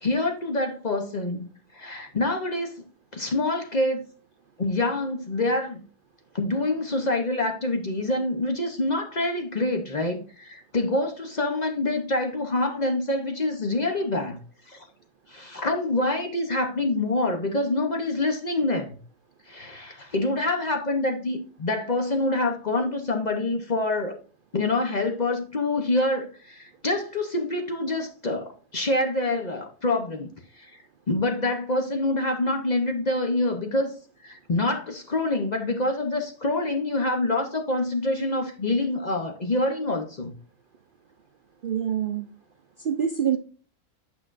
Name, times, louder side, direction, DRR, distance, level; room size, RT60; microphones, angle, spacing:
voice 1, 0.0-2.8 3.1-4.0 4.6-5.9 6.3-14.4 14.7-14.8 15.3-19.0 19.5-24.2 24.5-30.3 30.6-30.7 31.1-33.9 34.2-40.3, left 2 dB, 35° left, 4 dB, 0.7 m, -26 dB
voice 2, 41.6-42.3 42.8-43.4, right 8 dB, 85° right, 7 dB, 0.4 m, -25 dB
8.8 x 5.8 x 2.5 m, 0.39 s
omnidirectional pair, 1.6 m